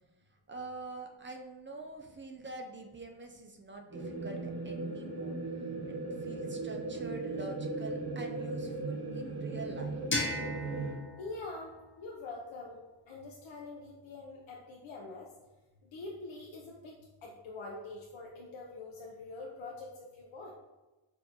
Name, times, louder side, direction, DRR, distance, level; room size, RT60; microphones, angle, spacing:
voice 1, 0.5-5.4 5.9-10.0, right 2 dB, 25° right, 2 dB, 0.4 m, -45 dB
sound 1, 3.9-10.9, right 3 dB, 45° right, 0.9 m, -37 dB
sound 2, 10.1-12.9, left 1 dB, 25° left, 0.7 m, -38 dB
voice 2, 11.2-11.7 12.0-12.8 13.1-15.3 15.9-17.0 17.2-20.5, left 3 dB, 65° left, -2 dB, 0.7 m, -44 dB
6.4 x 2.7 x 2.8 m, 1.1 s
wide cardioid pair, 150°, 50 cm